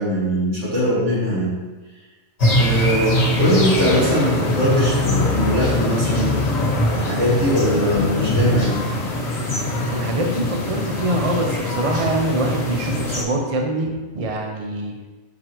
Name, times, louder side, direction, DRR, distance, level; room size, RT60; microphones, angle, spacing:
voice 1, 0.0-1.5 2.6-6.4 6.9-8.8, equal, 60° right, -7 dB, 2.5 m, -21 dB
sound 1, 2.4-13.2, left 1 dB, 55° left, 1.6 m, -22 dB
voice 2, 9.9-14.9, right 1 dB, 40° right, 1 dB, 0.5 m, -24 dB
6.6 x 5.9 x 3.0 m, 1.3 s
omnidirectional pair, 1.4 m